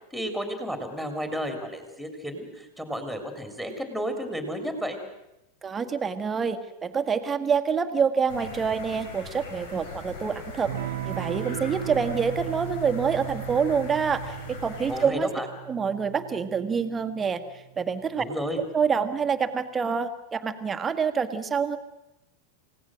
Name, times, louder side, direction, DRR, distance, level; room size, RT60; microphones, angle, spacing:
voice 1, 0.1-5.0 14.9-15.5 18.2-18.6, equal, 5° left, 6 dB, 3.4 m, -32 dB
voice 2, 5.6-10.7 11.0-15.3 15.7-18.2 18.7-21.8, right 6 dB, 20° right, 9 dB, 1.7 m, -26 dB
sound 1, 8.3-15.1, left 3 dB, 60° left, 4.5 m, -41 dB
Electric guitar / Strum, 10.7-19.0, right 16 dB, 55° right, 0.8 m, -37 dB
28.5 x 17.0 x 6.4 m, 0.91 s
figure-of-eight pair, 90°, 0 cm